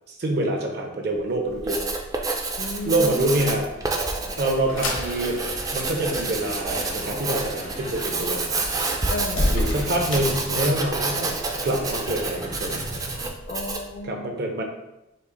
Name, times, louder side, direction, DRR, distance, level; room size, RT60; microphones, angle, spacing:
voice 1, 0.1-1.8 2.9-3.7 4.4-5.4 5.7-8.6 9.5-11.3 11.6-12.8 14.0-14.6, right 1 dB, 55° right, 2 dB, 0.7 m, -26 dB
Engine / Mechanisms, 1.1-13.3, right 1 dB, 80° right, 1.3 m, -40 dB
Writing, 1.5-13.9, right 3 dB, 20° right, 0.3 m, -29 dB
voice 2, 2.6-3.3 9.1-9.6 13.5-14.3, left 2 dB, 50° left, 5 dB, 0.5 m, -33 dB
sound 1, 3.8-11.1, left 1 dB, 85° left, 1.0 m, -32 dB
5.4 x 2.0 x 3.8 m, 0.92 s
head